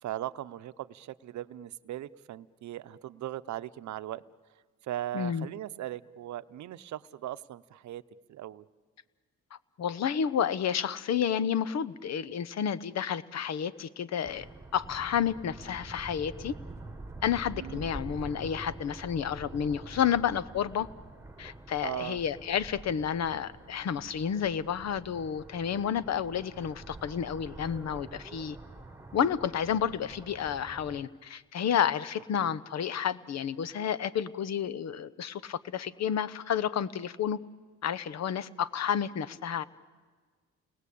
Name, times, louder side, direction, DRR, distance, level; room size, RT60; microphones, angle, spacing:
voice 1, 0.0-4.2 4.8-8.0 8.3-8.6 17.5-17.8 21.8-22.2 32.4-32.6, right 13 dB, 70° right, 14 dB, 0.8 m, -39 dB
voice 2, 5.1-5.5 9.8-14.5 14.7-16.5 17.2-20.9 21.4-28.6 29.1-37.4 37.8-39.6, left 8 dB, 60° left, 17 dB, 1.0 m, -30 dB
sound 1, 14.3-31.0, right 2 dB, 10° right, 1.6 m, -46 dB
29.0 x 20.0 x 8.5 m, 1.5 s
cardioid pair, 90°, 30 cm